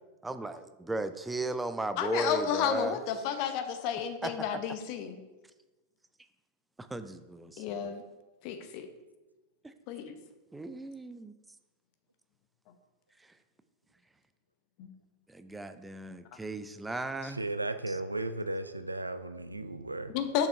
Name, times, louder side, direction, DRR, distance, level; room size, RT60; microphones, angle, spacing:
voice 1, 0.2-3.0 4.2-4.5 6.8-7.9 9.6-9.7 10.5-11.3 15.3-17.4 17.9-18.0, right 2 dB, 10° right, 11 dB, 0.4 m, -36 dB
voice 2, 2.0-5.2 7.6-8.0 8.4-8.9 9.9-10.2 14.8-14.9 20.1-20.5, left 8 dB, 45° left, 8 dB, 0.8 m, -32 dB
voice 3, 17.2-20.2, right 2 dB, 85° right, 11 dB, 0.4 m, -35 dB
6.8 x 5.3 x 4.5 m, 1.1 s
figure-of-eight pair, 90°, 0 cm